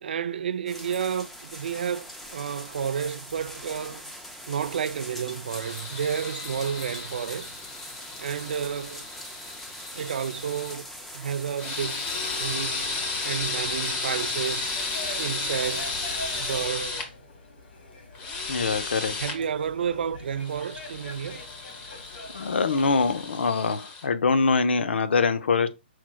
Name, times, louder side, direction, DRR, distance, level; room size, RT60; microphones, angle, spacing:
voice 1, 0.0-4.0 4.5-7.5 8.2-9.0 9.9-10.9 11.1-12.1 12.4-14.8 15.2-17.1 19.2-21.4, right 7 dB, 65° right, 0.4 m, -31 dB
sound 1, 0.7-16.7, equal, 5° left, 0.4 m, -43 dB
sound 2, 5.5-10.8 11.5-17.1 18.1-19.4 20.4-24.1, left 3 dB, 20° left, 0.8 m, -34 dB
sound 3, 14.7-23.3, left 1 dB, 70° left, 1.5 m, -43 dB
voice 2, 18.5-19.2 22.3-25.7, left 4 dB, 85° left, 0.6 m, -24 dB
5.8 x 3.1 x 2.3 m
hypercardioid pair, 160°, 6 cm